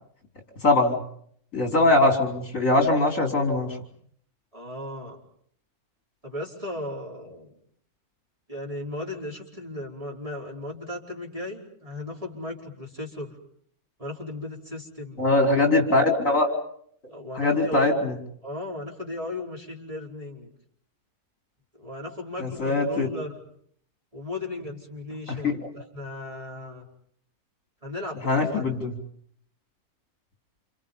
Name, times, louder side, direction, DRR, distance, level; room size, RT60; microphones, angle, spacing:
voice 1, 0.6-1.0 1.5-3.8 15.2-16.5 17.3-18.1 22.4-23.1 25.3-25.6 28.2-28.9, left 2 dB, 60° left, 3 dB, 4.8 m, -22 dB
voice 2, 4.5-5.2 6.2-7.5 8.5-13.4 14.0-15.2 17.1-18.1 18.4-20.5 21.8-23.4 24.1-26.9 27.8-28.6, left 2 dB, 20° right, -2 dB, 5.0 m, -36 dB
29.5 x 29.0 x 5.5 m, 0.65 s
omnidirectional pair, 1.6 m